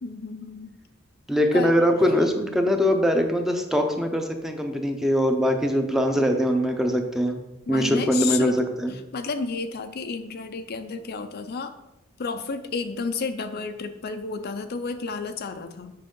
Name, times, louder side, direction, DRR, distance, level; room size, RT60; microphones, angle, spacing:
voice 1, 0.0-0.8 1.5-1.9 7.7-8.6 8.9-11.7 12.2-15.9, left 4 dB, 50° left, 8 dB, 0.5 m, -31 dB
voice 2, 1.3-7.4 7.7-8.5 8.8-8.9, equal, ahead, 4 dB, 0.6 m, -22 dB
7.6 x 5.4 x 3.8 m, 0.96 s
head